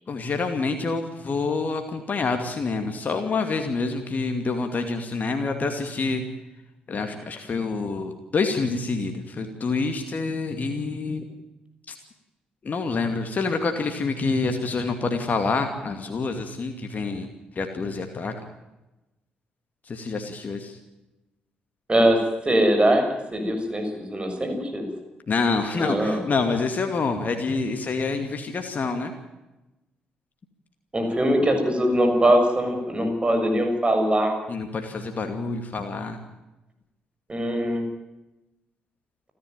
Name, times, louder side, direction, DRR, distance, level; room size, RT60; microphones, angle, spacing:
voice 1, 0.1-6.2 6.9-11.2 11.9-12.0 12.6-17.3 17.5-18.3 19.8-20.8 25.3-29.1 34.5-36.2, left 4 dB, 40° left, 5 dB, 2.5 m, -27 dB
voice 2, 21.9-23.0 23.3-24.9 25.7-26.2 30.9-34.3 37.3-37.8, right 1 dB, 20° right, 4 dB, 6.9 m, -22 dB
29.0 x 11.5 x 9.3 m, 1.0 s
figure-of-eight pair, 40°, 5 cm